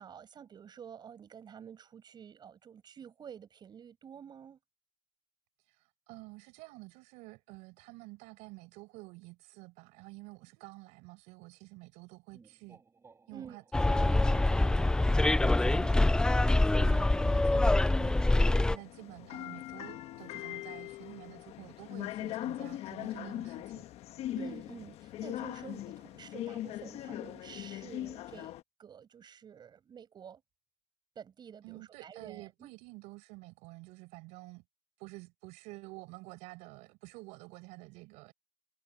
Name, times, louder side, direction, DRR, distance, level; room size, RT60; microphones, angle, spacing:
voice 1, 0.0-4.6 13.3-13.6 16.0-17.0 24.3-28.5 28.8-30.4 31.2-32.7, right 8 dB, 40° right, 7.2 m, -49 dB
voice 2, 5.7-12.8 13.3-23.8 31.6-34.6 35.0-38.3, right 24 dB, 85° right, 5.8 m, -50 dB
sound 1, 12.3-20.0, right 4 dB, 25° right, 4.3 m, -62 dB
Bus, 13.7-18.8, left 2 dB, 5° left, 0.3 m, -25 dB
sound 2, 18.2-28.6, left 14 dB, 65° left, 1.3 m, -41 dB
cardioid pair, 115°, 12 cm